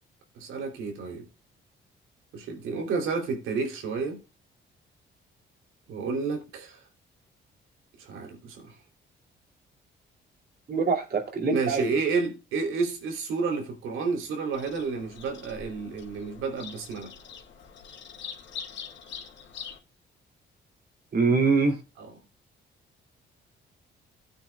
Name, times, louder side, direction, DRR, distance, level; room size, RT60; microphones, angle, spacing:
voice 1, 0.3-1.3 2.3-4.2 5.9-6.8 8.0-8.7 11.5-17.1 22.0-22.1, right 4 dB, 90° right, 3.1 m, -30 dB
voice 2, 10.7-12.0 21.1-21.8, right 4 dB, 50° right, 2.7 m, -24 dB
Bird vocalization bird call bird song, 14.5-19.8, left 7 dB, 65° left, 2.6 m, -43 dB
16.0 x 9.1 x 2.3 m
cardioid pair, 90°, 20 cm